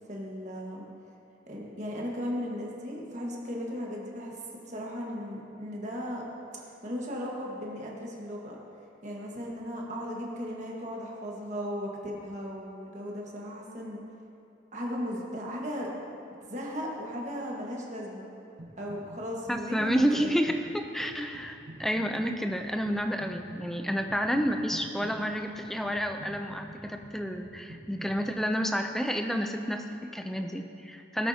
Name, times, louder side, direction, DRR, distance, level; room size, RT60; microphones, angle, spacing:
voice 1, 0.1-0.8 1.5-4.4 4.7-6.2 6.8-8.6 9.0-14.0 14.7-16.2 16.5-18.3 18.8-20.3 21.1-21.2, equal, 40° right, -2 dB, 1.5 m, -36 dB
sound 1, 18.6-19.2 19.5-28.3, right 1 dB, 65° right, 1.2 m, -49 dB
voice 2, 19.5-31.3, equal, ahead, 5 dB, 0.4 m, -30 dB
16.5 x 8.3 x 2.8 m, 2.6 s
head